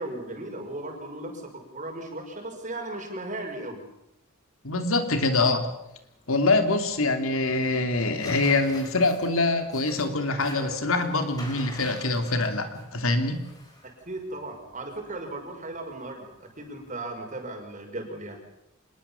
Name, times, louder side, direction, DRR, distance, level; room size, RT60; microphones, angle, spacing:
voice 1, 0.0-3.8 14.1-18.4, right 2 dB, 35° right, 3 dB, 5.7 m, -36 dB
voice 2, 4.6-5.7 6.3-13.4, left 2 dB, 75° left, 7 dB, 3.0 m, -24 dB
sound 1, 4.7-17.0, left 1 dB, 20° left, 5.3 m, -48 dB
26.5 x 21.0 x 7.2 m, 0.84 s
head